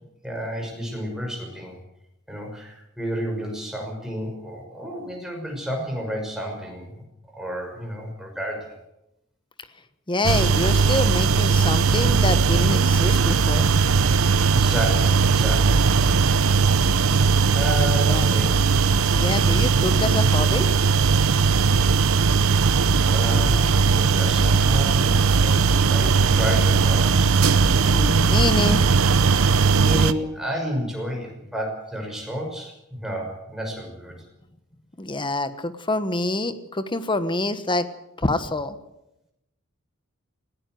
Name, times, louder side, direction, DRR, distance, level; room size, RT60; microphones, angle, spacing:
voice 1, 0.2-1.8 2.3-7.0 7.3-8.7 14.5-15.9 17.5-18.6 23.1-27.4 29.4-34.2, equal, ahead, 0 dB, 5.9 m, -31 dB
voice 2, 10.1-13.7 18.0-18.3 19.1-20.7 27.6-28.8 35.0-37.9 38.2-38.8, left 2 dB, 25° left, 11 dB, 1.3 m, -26 dB
sound 1, 10.2-30.1, right 5 dB, 70° right, 0.8 m, -19 dB
20.0 x 17.0 x 7.8 m, 0.87 s
head